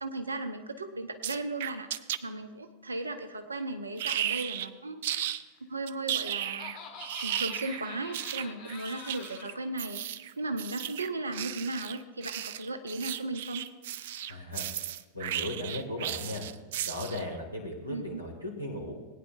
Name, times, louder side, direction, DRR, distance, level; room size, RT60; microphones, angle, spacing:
voice 1, 0.0-5.0 5.7-6.7 7.2-13.6 17.9-18.2, right 2 dB, 75° right, 9 dB, 0.8 m, -36 dB
sound 1, 1.2-2.2 4.0-4.7 5.0-5.4 5.9-17.3, right 11 dB, 55° right, 0.4 m, -35 dB
Laughter, 5.8-9.6, left 5 dB, 40° left, 1.8 m, -46 dB
voice 2, 14.3-14.7 15.1-16.4 16.8-18.9, left 1 dB, 85° left, -1 dB, 2.1 m, -36 dB
19.0 x 9.4 x 2.5 m, 1.3 s
figure-of-eight pair, 90°, 0 cm